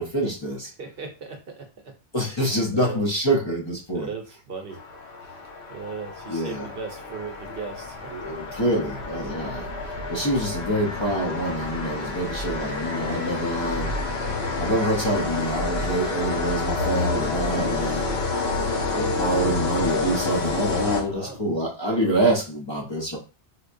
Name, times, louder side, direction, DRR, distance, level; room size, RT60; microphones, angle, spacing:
voice 1, 0.0-0.7 2.1-4.1 6.3-6.7 8.1-14.0 14.6-18.1 18.9-23.2, right 1 dB, 30° left, -3 dB, 0.7 m, -26 dB
voice 2, 0.8-1.9 2.2-2.3 2.7-3.1 3.9-4.8 5.2-8.3 10.0-10.2 21.1-21.4, right 5 dB, 65° right, 3 dB, 0.9 m, -38 dB
sound 1, 4.7-21.5, left 3 dB, 85° left, 1.1 m, -29 dB
4.3 x 2.2 x 2.5 m, 0.33 s
omnidirectional pair, 1.1 m